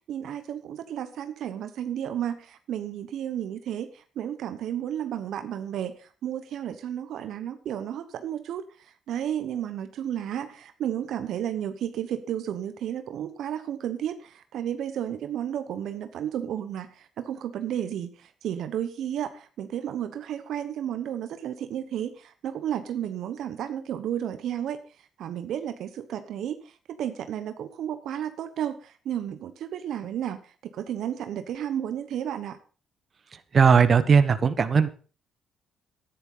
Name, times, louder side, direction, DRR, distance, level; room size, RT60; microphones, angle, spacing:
voice 1, 0.1-24.8 25.2-26.7 27.0-32.6, right 10 dB, 75° right, 10 dB, 1.0 m, -32 dB
voice 2, 33.5-34.9, right 6 dB, 45° right, 11 dB, 1.2 m, -18 dB
11.0 x 10.5 x 5.5 m, 0.39 s
cardioid pair, 90°, 0 cm